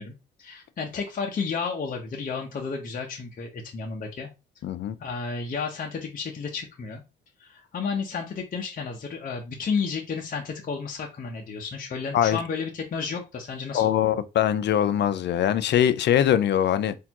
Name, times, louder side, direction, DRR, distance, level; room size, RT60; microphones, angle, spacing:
voice 1, 0.0-4.3 5.0-7.0 7.4-14.2, left 5 dB, 45° left, 0.9 m, -32 dB
voice 2, 4.6-4.9 12.1-12.4 13.7-16.9, left 10 dB, 60° left, 0.5 m, -22 dB
4.2 x 2.8 x 2.9 m
cardioid pair, 90°, 20 cm